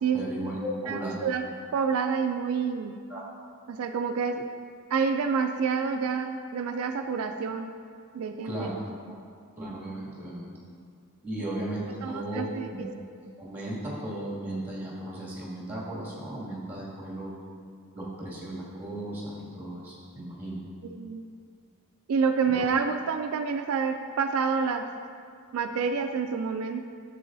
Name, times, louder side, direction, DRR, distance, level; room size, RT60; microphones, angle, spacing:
voice 1, 0.1-1.2 3.1-3.2 8.4-8.7 9.6-10.5 11.2-12.9 13.4-17.3 17.9-20.6 22.5-22.6, right 1 dB, 10° right, -7 dB, 2.1 m, -35 dB
voice 2, 0.9-1.5 1.7-2.9 3.7-4.5 4.9-7.7 8.1-8.7 9.1-9.2 11.4-11.5 12.0-12.9 20.8-21.2 22.1-24.9 25.5-26.8, right 5 dB, 70° right, 6 dB, 0.4 m, -28 dB
11.5 x 6.9 x 2.6 m, 2.2 s
head